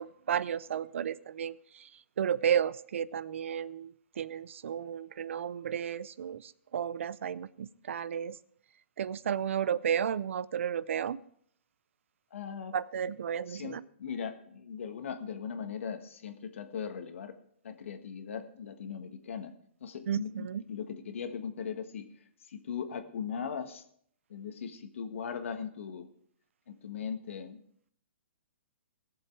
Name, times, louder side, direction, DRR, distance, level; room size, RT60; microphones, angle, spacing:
voice 1, 0.0-1.9 2.2-8.4 9.0-11.2 12.7-13.8 20.1-20.6, right 8 dB, 70° right, 19 dB, 0.5 m, -33 dB
voice 2, 12.3-12.7 13.5-17.3 17.6-19.5 19.8-22.1 22.5-23.8 24.3-26.1 26.7-27.6, left 7 dB, 70° left, 7 dB, 1.5 m, -39 dB
17.0 x 7.2 x 4.7 m, 0.67 s
hypercardioid pair, 135°, 7 cm